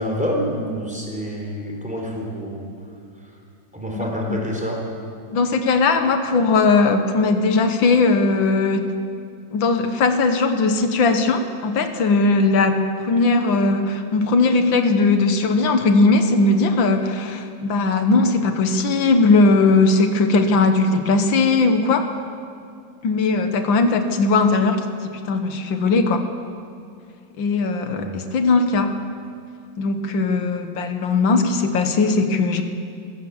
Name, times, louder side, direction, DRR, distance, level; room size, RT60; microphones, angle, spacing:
voice 1, 0.0-2.7 3.7-4.8 27.9-28.2, equal, 5° right, -1 dB, 4.1 m, -27 dB
voice 2, 3.9-4.4 5.3-8.9 9.5-22.1 23.0-26.2 27.4-28.9 29.8-32.6, left 3 dB, 90° left, 7 dB, 2.0 m, -19 dB
25.0 x 15.5 x 7.3 m, 2.3 s
omnidirectional pair, 2.0 m